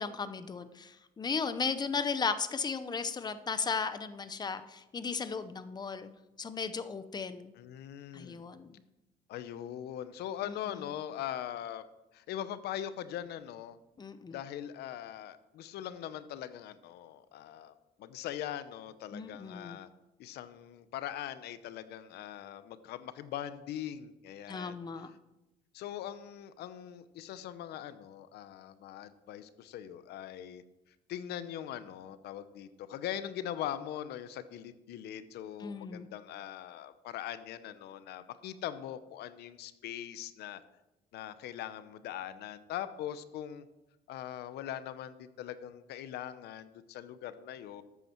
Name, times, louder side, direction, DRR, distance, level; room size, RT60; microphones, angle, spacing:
voice 1, 0.0-6.1 6.4-7.5 8.1-8.7 14.0-14.3 19.1-19.8 24.5-25.1 35.6-36.1, left 5 dB, 25° left, 11 dB, 0.8 m, -35 dB
voice 2, 7.6-8.4 9.3-11.8 12.1-13.8 14.3-19.9 20.2-24.8 25.7-30.6 31.1-40.6 41.1-43.7 44.1-47.8, left 11 dB, 75° left, 13 dB, 0.8 m, -41 dB
13.0 x 8.3 x 4.5 m, 0.98 s
cardioid pair, 110°, 17 cm